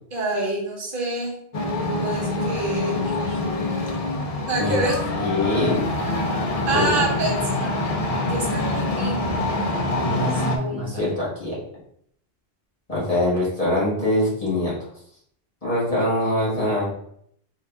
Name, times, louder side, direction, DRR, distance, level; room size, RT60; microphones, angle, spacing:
voice 1, 0.1-1.4 2.0-3.5 4.5-5.0 6.7-7.7 8.2-9.3 10.1-11.0, right 2 dB, 55° right, -2 dB, 1.3 m, -27 dB
sound 1, 1.5-10.6, left 2 dB, 50° left, 0.4 m, -25 dB
voice 2, 5.2-5.8 6.7-6.9 9.9-11.6 12.9-14.7 15.6-16.9, left 1 dB, 35° left, -7 dB, 1.5 m, -23 dB
3.7 x 2.6 x 3.4 m, 0.68 s
omnidirectional pair, 1.1 m